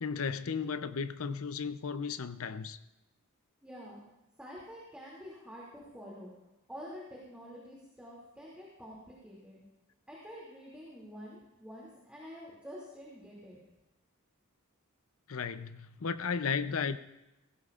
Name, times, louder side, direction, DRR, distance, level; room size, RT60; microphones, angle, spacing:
voice 1, 0.0-2.8 15.3-17.0, left 5 dB, 65° left, 0.6 m, -34 dB
voice 2, 3.6-4.0 4.4-6.3 6.7-9.6 10.1-13.6, equal, 5° right, 2.5 m, -48 dB
19.5 x 16.0 x 2.5 m
head